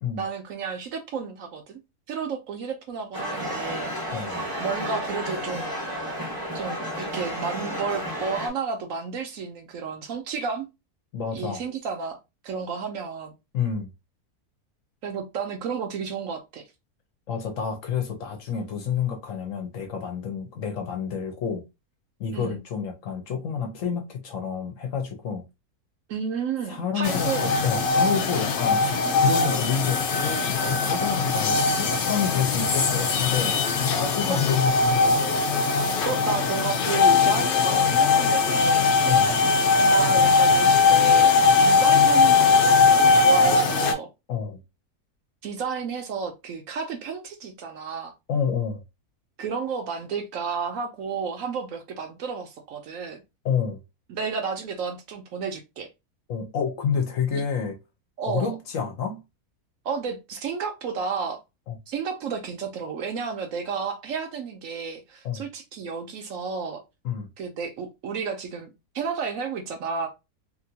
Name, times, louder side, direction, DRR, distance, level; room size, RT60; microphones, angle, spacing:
voice 1, 0.2-1.8 2.1-3.9 4.6-5.7 6.5-10.7 11.3-12.2 12.4-13.3 15.0-16.6 22.3-22.6 26.1-27.5 34.3-34.4 36.0-38.9 39.9-44.1 45.4-48.1 49.4-53.2 54.1-55.9 57.3-57.4 58.2-58.5 59.8-61.4 61.9-66.8 67.4-68.7 68.9-70.1, right 5 dB, 65° right, 0.9 m, -32 dB
sound 1, 3.1-8.5, equal, 20° left, 0.6 m, -32 dB
voice 2, 4.1-4.4 11.1-11.6 13.5-13.9 17.3-21.6 22.2-25.4 26.7-27.3 27.6-33.5 33.9-35.2 39.1-39.3 44.3-44.6 48.3-48.8 53.4-53.8 56.3-57.8 58.3-59.2 61.7-61.8 65.2-65.4 67.0-67.3, left 7 dB, 65° left, 1.0 m, -29 dB
sound 2, 27.0-43.9, left 4 dB, 85° left, 0.4 m, -20 dB
2.9 x 2.5 x 2.7 m
omnidirectional pair, 1.6 m